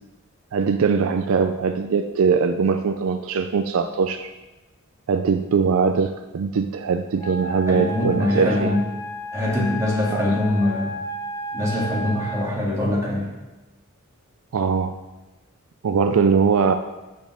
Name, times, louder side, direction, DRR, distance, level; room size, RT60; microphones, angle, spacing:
voice 1, 0.5-4.3 5.1-8.7 10.1-10.3 14.5-14.9 15.8-16.7, right 5 dB, 65° right, 8 dB, 0.4 m, -21 dB
Wind instrument woodwind instrument, 7.2-12.5, equal, 15° left, 0.6 m, -32 dB
voice 2, 7.7-8.8 9.3-10.9 11.5-13.3, left 1 dB, 15° right, -6 dB, 2.1 m, -23 dB
6.7 x 5.2 x 6.2 m, 1.1 s
head